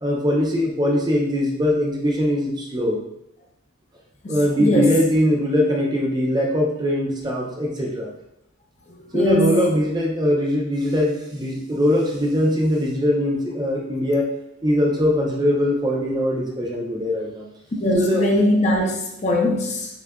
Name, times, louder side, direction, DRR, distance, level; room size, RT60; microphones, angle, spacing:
voice 1, 0.0-3.0 4.3-8.1 9.1-14.3 14.6-17.5 18.0-18.3, equal, 20° right, -1 dB, 0.5 m, -21 dB
voice 2, 4.2-4.9 9.1-9.7 17.8-19.9, left 1 dB, 35° left, 1 dB, 0.5 m, -21 dB
6.7 x 2.4 x 2.2 m, 0.82 s
head